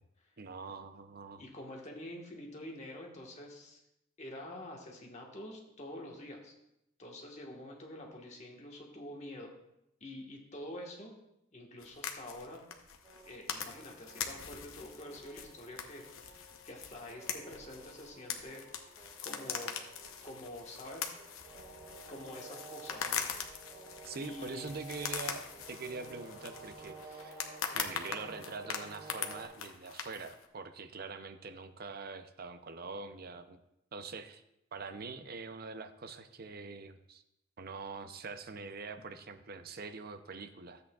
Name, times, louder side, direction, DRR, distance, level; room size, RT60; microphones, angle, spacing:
voice 1, 0.4-1.4 24.0-27.4 27.7-33.6 33.9-34.4 34.7-37.2 37.6-40.8, right 4 dB, 45° right, 9 dB, 0.6 m, -44 dB
voice 2, 1.4-3.8 4.2-6.5 7.0-9.5 10.0-11.2 11.5-12.6 13.2-16.1 16.7-19.8 20.2-21.1 22.1-23.3 24.2-24.7, left 1 dB, 35° left, 0 dB, 1.4 m, -47 dB
sound 1, 11.8-30.5, left 7 dB, 80° left, 0.8 m, -42 dB
sound 2, 13.0-29.5, right 3 dB, 30° right, 2.0 m, -53 dB
13.0 x 8.1 x 2.3 m, 0.82 s
head